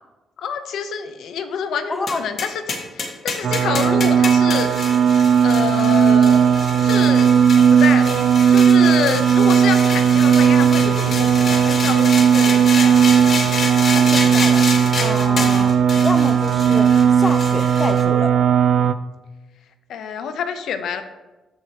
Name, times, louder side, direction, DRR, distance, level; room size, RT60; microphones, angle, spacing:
voice 1, 0.4-4.7 5.4-7.3 7.7-8.2 8.5-13.0 15.4-15.6 19.9-21.0, left 7 dB, 75° left, 9 dB, 0.8 m, -27 dB
voice 2, 1.9-2.2 13.9-14.7 15.0-15.7 16.0-18.4, left 2 dB, 20° left, 8 dB, 0.5 m, -27 dB
sound 1, 2.1-18.0, left 4 dB, 50° left, 1.6 m, -28 dB
sound 2, 3.4-18.9, right 7 dB, 70° right, 0.4 m, -16 dB
13.5 x 4.7 x 2.9 m, 1.1 s
cardioid pair, 90°, 0 cm